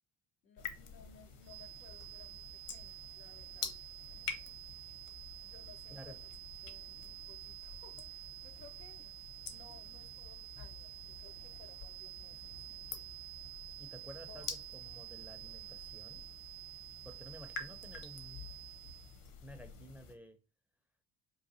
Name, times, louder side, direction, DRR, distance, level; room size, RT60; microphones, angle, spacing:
voice 1, 0.4-3.7 5.4-6.2 6.6-9.1 9.4-12.5 14.3-14.5, left 6 dB, 90° left, 0.6 m, -60 dB
sound 1, 0.6-20.1, left 5 dB, 65° left, 0.9 m, -49 dB
sound 2, 1.4-19.2, right 19 dB, 85° right, 0.7 m, -50 dB
voice 2, 13.8-16.2 17.0-18.5 19.4-20.4, equal, 5° right, 0.4 m, -53 dB
3.9 x 2.5 x 2.6 m
figure-of-eight pair, 50°, 49 cm